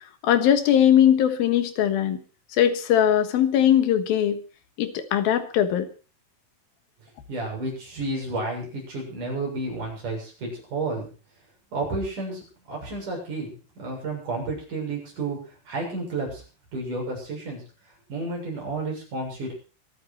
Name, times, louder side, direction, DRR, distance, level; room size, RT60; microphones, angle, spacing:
voice 1, 0.2-2.2 2.5-4.4 4.8-5.9, left 10 dB, 85° left, 9 dB, 3.3 m, -20 dB
voice 2, 7.3-11.1 11.7-16.4 16.7-17.6 18.1-19.5, right 2 dB, 60° right, -1 dB, 8.8 m, -31 dB
25.5 x 9.2 x 4.5 m, 0.35 s
omnidirectional pair, 4.1 m